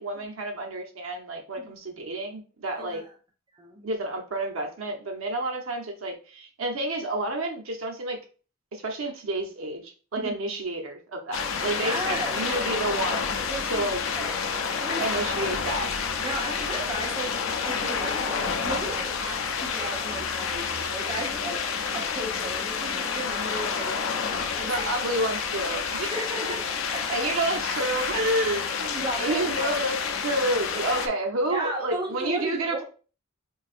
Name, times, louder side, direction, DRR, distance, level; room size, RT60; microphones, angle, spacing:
voice 1, 0.0-3.0 3.8-8.2 8.7-13.4 13.6-14.0 15.0-15.9 24.6-26.1 27.1-32.8, right 1 dB, 75° right, 3 dB, 0.7 m, -30 dB
voice 2, 2.8-3.1 3.5-3.9 10.2-10.3 11.8-12.3 13.5-14.3 14.8-15.0 16.2-17.4 17.7-21.6 21.9-24.0 24.5-24.7 26.0-27.4 28.9-29.7 31.5-32.8, right 1 dB, 20° right, -1 dB, 0.8 m, -35 dB
sound 1, 11.3-31.1, left 6 dB, 65° left, 0.5 m, -29 dB
4.7 x 2.6 x 2.4 m, 0.38 s
head